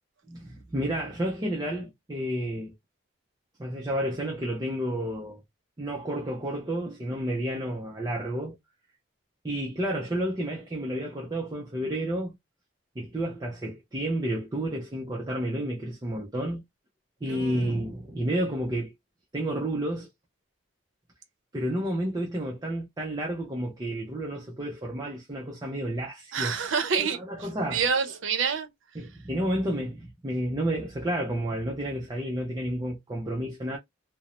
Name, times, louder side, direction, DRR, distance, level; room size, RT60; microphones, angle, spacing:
voice 1, 0.3-2.7 3.6-5.4 5.8-8.6 9.4-12.3 13.0-16.6 17.2-18.9 19.3-20.1 21.5-26.5 26.9-27.8 29.0-33.8, right 1 dB, 20° right, 0.4 m, -31 dB
voice 2, 17.2-17.7 26.3-28.7, right 6 dB, 70° right, 0.6 m, -28 dB
2.5 x 2.0 x 2.9 m
head